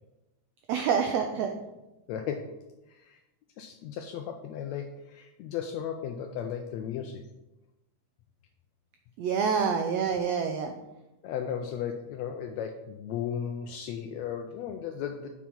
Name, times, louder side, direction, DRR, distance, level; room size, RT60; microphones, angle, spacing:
voice 1, 0.7-1.5 9.2-10.7, right 6 dB, 85° right, 5 dB, 1.4 m, -27 dB
voice 2, 2.1-3.2 3.6-7.2 11.2-15.3, left 8 dB, 80° left, 5 dB, 1.6 m, -35 dB
7.3 x 4.8 x 5.3 m, 0.98 s
omnidirectional pair, 3.6 m